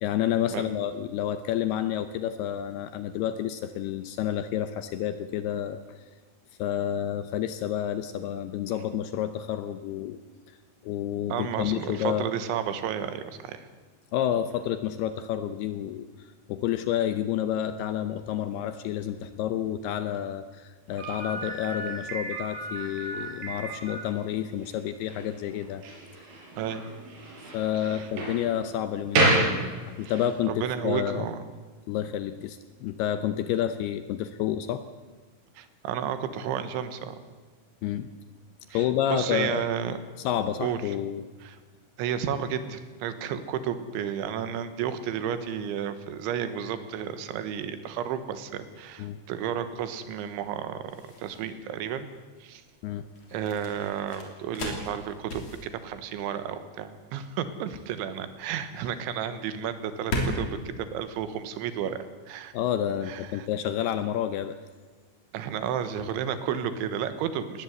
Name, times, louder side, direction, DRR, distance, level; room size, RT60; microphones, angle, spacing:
voice 1, 0.0-5.8 6.6-10.2 10.8-12.3 14.1-16.1 16.5-25.8 27.5-29.4 30.0-31.2 31.9-34.8 37.8-38.1 38.7-39.7 40.2-41.2 49.0-49.2 52.8-53.0 62.5-64.6, left 10 dB, 75° left, 10 dB, 2.4 m, -29 dB
voice 2, 11.3-13.7 26.6-26.9 27.8-28.1 30.5-31.4 35.6-37.2 38.7-38.9 39.1-40.0 40.6-41.0 41.4-41.6 42.0-52.1 52.4-52.6 53.3-62.5 63.1-63.5 65.3-67.6, right 8 dB, 85° right, 11 dB, 3.6 m, -32 dB
Slam, 21.0-30.3, right 2 dB, 55° right, 6.8 m, -31 dB
sound 1, 50.8-62.0, left 1 dB, 40° left, 4.1 m, -38 dB
20.5 x 18.5 x 8.2 m, 1.4 s
omnidirectional pair, 5.3 m